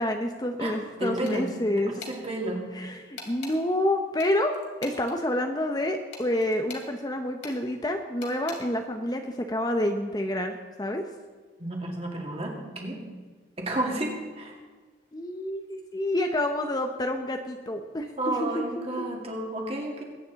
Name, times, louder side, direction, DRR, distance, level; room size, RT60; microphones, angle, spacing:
voice 1, 0.0-1.9 2.7-11.0 15.1-18.6 19.0-19.1, left 1 dB, 20° left, 4 dB, 0.7 m, -28 dB
voice 2, 1.0-1.5 1.9-2.6 11.6-13.0 13.6-14.6 18.2-20.0, right 1 dB, 30° right, 0 dB, 2.3 m, -31 dB
sound 1, 1.3-1.6 2.0-2.2 3.2-3.6 4.2-5.2 6.1-6.9 7.4-7.6 8.2-8.6, left 4 dB, 65° left, 2.6 m, -42 dB
21.0 x 9.4 x 4.0 m, 1.4 s
head